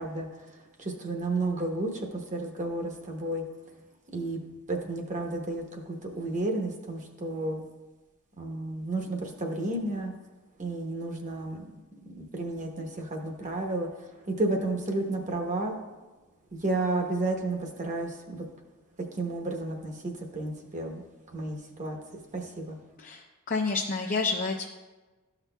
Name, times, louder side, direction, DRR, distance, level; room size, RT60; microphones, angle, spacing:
voice 1, 0.0-3.4 4.1-4.4 4.7-7.6 8.4-10.1 10.6-11.6 12.0-15.7 16.5-18.4 19.1-21.0 21.3-22.8, right 2 dB, 35° right, 2 dB, 0.9 m, -32 dB
voice 2, 23.0-24.7, left 3 dB, 40° left, 1 dB, 0.5 m, -29 dB
13.0 x 5.9 x 2.2 m, 1.2 s
head